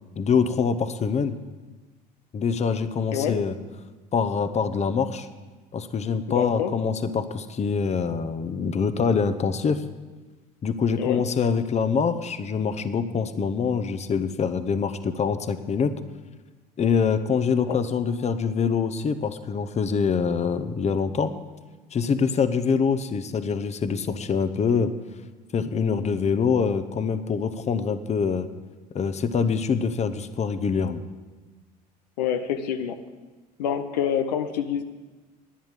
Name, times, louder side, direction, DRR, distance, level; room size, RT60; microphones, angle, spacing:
voice 1, 0.2-1.3 2.3-3.5 4.1-5.3 5.7-9.8 10.6-15.9 16.8-21.3 21.9-24.9 25.5-28.5 28.9-31.0, left 6 dB, 30° left, 12 dB, 0.9 m, -25 dB
voice 2, 6.3-6.7 11.0-11.2 17.7-17.8 32.2-33.0 33.6-34.8, left 8 dB, 80° left, 8 dB, 0.8 m, -27 dB
11.5 x 10.5 x 7.4 m, 1.2 s
hypercardioid pair, 70°, 21 cm